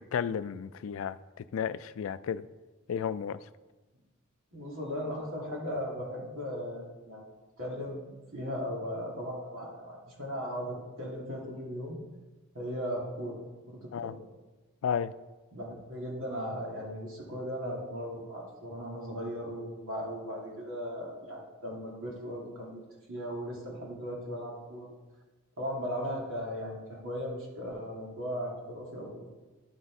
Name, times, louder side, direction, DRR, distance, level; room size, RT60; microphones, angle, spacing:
voice 1, 0.1-1.2 1.5-2.4 2.9-3.4 13.9-14.1 14.8-15.1, left 7 dB, 75° left, 15 dB, 0.3 m, -32 dB
voice 2, 4.5-7.2 7.6-12.0 12.5-13.4 13.7-14.2 15.5-22.8 23.1-24.9 25.6-29.3, equal, 80° right, -3 dB, 2.6 m, -37 dB
11.0 x 4.1 x 4.7 m, 1.2 s
head